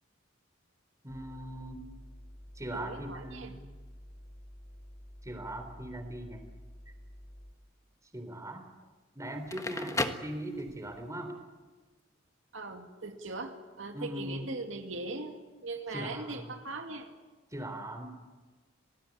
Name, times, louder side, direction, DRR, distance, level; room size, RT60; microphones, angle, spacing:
voice 1, 1.0-1.9 2.6-3.7 5.2-6.4 8.1-8.7 9.2-11.4 13.9-14.5 15.9-16.5 17.5-18.1, right 1 dB, 15° right, 6 dB, 3.6 m, -40 dB
sound 1, 1.1-7.5, equal, 55° left, 3.8 m, -50 dB
voice 2, 2.7-3.5 12.5-17.1, right 3 dB, 85° right, 5 dB, 2.3 m, -40 dB
Crackle, 9.3-11.0, left 2 dB, 15° left, 1.4 m, -35 dB
27.0 x 19.0 x 8.7 m, 1.3 s
head